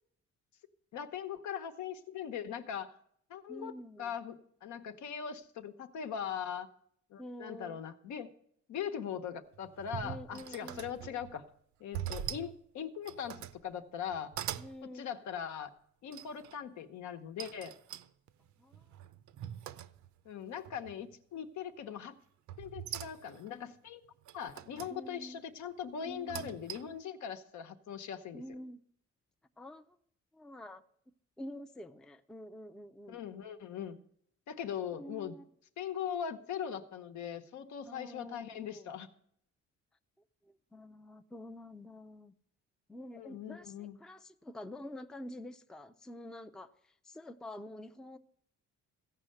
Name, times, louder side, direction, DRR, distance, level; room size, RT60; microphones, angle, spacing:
voice 1, 0.9-2.9 3.3-3.7 4.0-6.7 7.1-8.3 8.7-11.4 11.8-14.3 14.9-15.7 16.0-17.7 20.2-22.2 22.6-24.0 24.3-28.4 33.1-34.0 34.5-35.4 35.8-39.1 43.1-44.0, left 8 dB, 75° left, 1.0 m, -40 dB
voice 2, 3.5-4.2 7.2-7.8 10.0-11.2 14.6-15.1 18.6-18.8 24.9-25.4 26.0-26.5 28.3-28.8 29.6-30.0 30.3-30.8 31.4-33.3 35.0-35.4 37.8-38.9 40.4-42.3 42.9-48.2, left 1 dB, ahead, 0.4 m, -48 dB
sound 1, 9.5-11.4 11.9-12.6 13.0-13.6 14.1-14.7 16.1-16.6 17.4-20.3 20.7-21.2 22.5-23.5 24.3-25.0 26.1-27.0, right 11 dB, 75° right, 0.6 m, -43 dB
15.5 x 5.6 x 7.7 m
cardioid pair, 140°, 29 cm